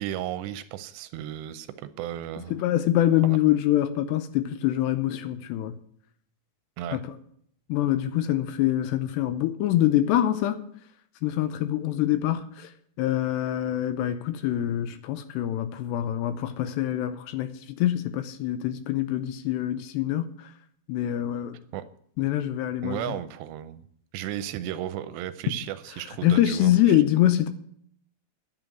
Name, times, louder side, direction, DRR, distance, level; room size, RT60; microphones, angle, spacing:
voice 1, 0.0-2.6 3.2-3.4 6.8-7.0 21.7-21.9 22.8-23.8 24.1-27.0, right 11 dB, 80° right, 2.6 m, -34 dB
voice 2, 2.5-5.8 6.9-7.2 7.7-10.6 11.2-12.7 13.0-20.3 20.9-21.6 22.2-23.0 26.2-27.5, left 12 dB, 80° left, 2.7 m, -25 dB
11.0 x 7.4 x 9.2 m
omnidirectional pair, 5.2 m